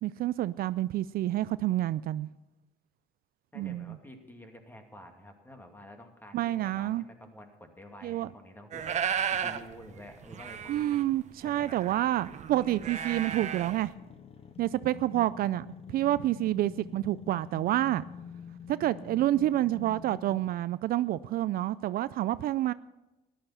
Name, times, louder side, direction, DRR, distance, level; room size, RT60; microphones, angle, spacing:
voice 1, 0.0-2.3 3.6-4.0 6.3-7.0 8.0-8.3 10.7-13.9 14.6-15.7 15.9-18.0 18.7-22.7, right 14 dB, 60° right, 0.4 m, -28 dB
voice 2, 3.5-8.9 9.4-11.1 11.4-12.0, equal, 10° left, 2.4 m, -50 dB
sound 1, 8.7-9.6 10.0-10.1 10.2-13.9, right 8 dB, 45° right, 0.9 m, -34 dB
sound 2, 13.9-20.7, left 6 dB, 35° left, 0.8 m, -47 dB
14.0 x 11.0 x 5.7 m
cardioid pair, 110°, 17 cm